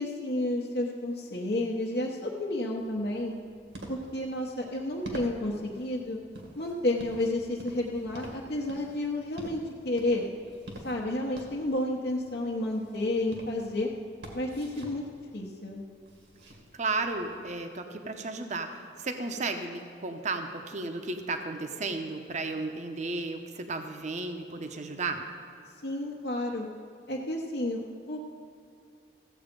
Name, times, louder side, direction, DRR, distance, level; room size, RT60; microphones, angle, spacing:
voice 1, 0.0-3.3 3.9-6.2 6.6-10.2 10.8-13.9 14.3-15.0 15.3-15.8 25.8-26.7 27.1-27.8 28.1-28.2, left 1 dB, 60° left, -4 dB, 1.0 m, -31 dB
sound 1, 2.8-17.5, right 1 dB, 85° right, 2.0 m, -47 dB
voice 2, 16.7-25.2, right 3 dB, 40° right, 6 dB, 0.8 m, -34 dB
15.0 x 8.0 x 5.3 m, 2.5 s
head